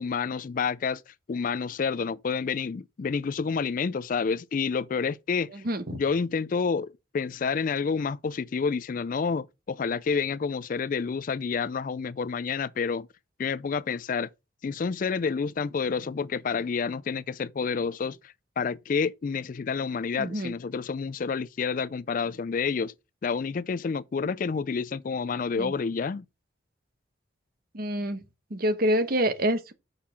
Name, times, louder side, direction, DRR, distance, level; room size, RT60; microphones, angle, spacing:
voice 1, 0.0-5.5 5.9-13.1 13.4-14.3 14.6-22.9 23.2-26.2, left 5 dB, 45° left, 0.3 m, -29 dB
voice 2, 5.5-6.0 20.1-20.5 25.6-25.7 27.7-28.2 28.5-29.7, equal, 50° right, 1.1 m, -27 dB
6.6 x 5.5 x 5.7 m
head